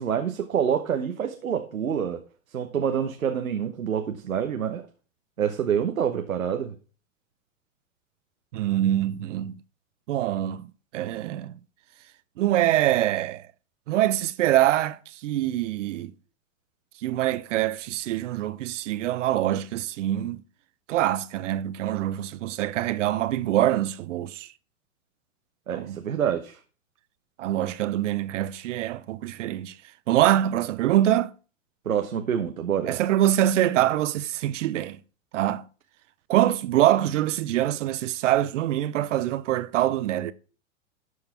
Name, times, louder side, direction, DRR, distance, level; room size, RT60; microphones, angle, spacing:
voice 1, 0.0-2.2 2.5-4.8 5.4-6.7 25.7-26.6 31.8-33.0, right 8 dB, 90° right, 1.1 m, -27 dB
voice 2, 8.5-9.5 10.1-10.7 10.9-11.6 12.4-13.5 13.9-16.1 17.0-20.4 20.9-24.5 25.7-26.0 27.4-29.7 30.1-31.3 32.9-35.0 35.3-35.6 36.3-40.3, right 13 dB, 65° right, 0.8 m, -24 dB
12.5 x 4.8 x 5.7 m
hypercardioid pair, 115°, 40 cm